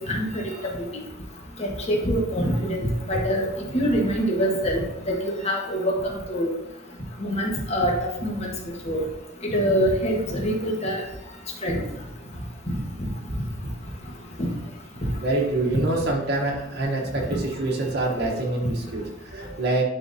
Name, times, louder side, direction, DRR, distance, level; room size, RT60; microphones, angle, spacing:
voice 1, 0.1-0.4 1.6-2.8 3.1-3.4 3.7-6.0 6.3-6.5 7.2-8.0 8.2-8.5 8.8-9.0 9.5-11.0 11.6-11.8 12.7-13.1 15.0-15.1, equal, 35° left, -1 dB, 1.4 m, -24 dB
voice 2, 15.2-19.8, right 2 dB, 60° right, -2 dB, 1.1 m, -26 dB
11.0 x 3.8 x 2.7 m, 0.88 s
head